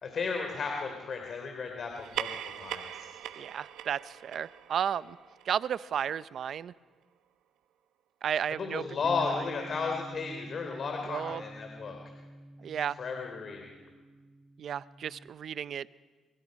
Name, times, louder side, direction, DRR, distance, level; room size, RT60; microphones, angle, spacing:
voice 1, 0.0-3.1 8.6-12.0 13.0-13.7, left 5 dB, 50° left, 3 dB, 3.2 m, -34 dB
sound 1, 1.9-6.8, right 10 dB, 85° right, 0.9 m, -42 dB
voice 2, 3.4-5.2 5.4-6.7 8.2-8.8 9.2-9.3 11.0-11.4 12.6-13.0 14.6-15.9, right 8 dB, 60° right, 17 dB, 0.6 m, -33 dB
Bass guitar, 9.0-15.3, right 1 dB, 15° right, 1.5 m, -47 dB
25.5 x 24.5 x 5.3 m, 1.4 s
cardioid pair, 90°, 0 cm